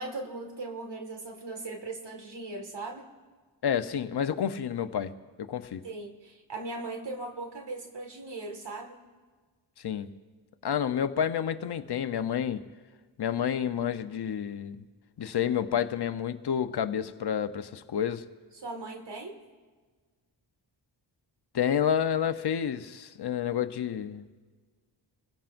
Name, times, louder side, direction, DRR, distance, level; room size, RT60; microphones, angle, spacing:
voice 1, 0.0-3.1 5.8-9.0 18.6-19.4, right 2 dB, 65° right, 3 dB, 2.1 m, -39 dB
voice 2, 3.6-5.1 5.4-5.8 9.8-10.1 10.6-12.6 13.2-14.8 15.2-18.2 21.5-24.2, left 8 dB, 60° left, 9 dB, 0.8 m, -29 dB
25.5 x 16.0 x 2.6 m, 1.4 s
cardioid pair, 70°, 46 cm